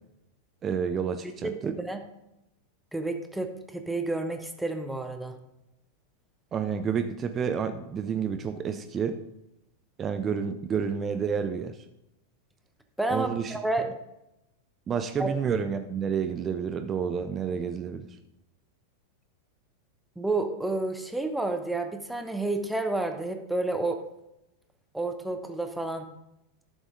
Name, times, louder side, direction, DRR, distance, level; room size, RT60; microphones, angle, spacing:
voice 1, 0.6-1.8 6.5-9.2 10.0-11.8 13.1-13.6 14.9-18.0, right 7 dB, 25° right, 9 dB, 0.6 m, -29 dB
voice 2, 1.4-2.0 2.9-5.3 13.0-13.9 15.2-15.3 20.2-24.0 24.9-26.1, right 2 dB, 5° right, 6 dB, 0.9 m, -30 dB
12.0 x 7.1 x 3.7 m, 0.87 s
figure-of-eight pair, 90°, 0 cm